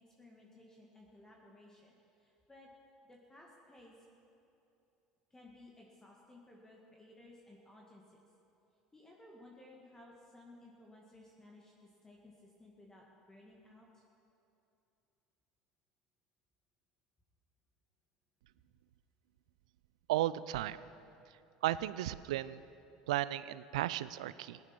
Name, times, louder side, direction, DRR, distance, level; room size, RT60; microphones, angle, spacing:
voice 1, 0.1-2.7 3.0-4.0 5.3-8.2 8.9-14.0, left 1 dB, 15° left, -2 dB, 2.1 m, -58 dB
voice 2, 20.1-20.8 21.6-22.6 23.1-24.6, right 14 dB, 80° right, 17 dB, 0.4 m, -34 dB
17.0 x 10.5 x 6.0 m, 2.7 s
hypercardioid pair, 75°, 4 cm